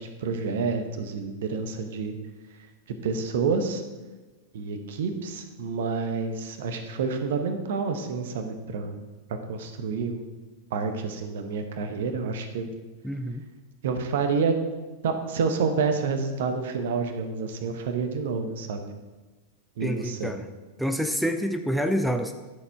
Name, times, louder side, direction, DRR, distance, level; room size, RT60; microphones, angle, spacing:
voice 1, 0.0-2.1 3.0-3.8 4.5-9.0 9.3-10.2 10.7-12.7 13.8-14.6 15.0-18.8 19.8-20.3, right 5 dB, 55° right, 7 dB, 1.2 m, -28 dB
voice 2, 13.0-13.4 19.8-20.5 20.8-22.3, equal, ahead, 6 dB, 0.6 m, -27 dB
11.0 x 6.9 x 4.6 m, 1.2 s
figure-of-eight pair, 90°, 0 cm